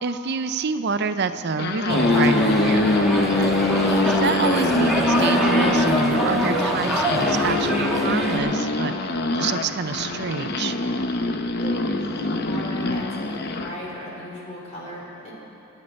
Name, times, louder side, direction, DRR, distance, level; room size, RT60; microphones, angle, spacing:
voice 1, 0.0-3.6 4.0-8.9 9.3-10.8, right 5 dB, 55° right, 10 dB, 0.6 m, -28 dB
sound 1, 1.4-13.8, left 2 dB, 50° left, 0.8 m, -23 dB
sound 2, 1.9-8.4, equal, ahead, 1.7 m, -24 dB
voice 2, 11.6-15.3, equal, 30° left, -4 dB, 3.3 m, -36 dB
25.0 x 9.5 x 4.3 m, 3.0 s
head